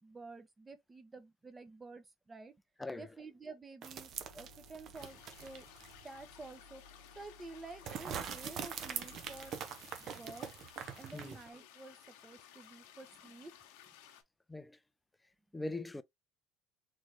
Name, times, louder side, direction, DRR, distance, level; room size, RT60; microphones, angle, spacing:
voice 1, 0.0-2.5 3.0-5.6 6.0-9.6 10.0-10.5 10.9-12.0 12.2-13.5, right 3 dB, 20° right, 1.0 m, -51 dB
sound 1, 3.8-6.1 6.4-6.5 7.9-11.5, right 7 dB, 50° right, 0.9 m, -43 dB
sound 2, 4.1-9.5, left 3 dB, 75° right, 1.7 m, -60 dB
sound 3, 5.0-14.2, left 10 dB, 80° left, 0.9 m, -58 dB
voice 2, 15.5-16.0, left 2 dB, 10° left, 0.5 m, -41 dB
3.7 x 3.2 x 3.0 m
supercardioid pair, 100°, 0 cm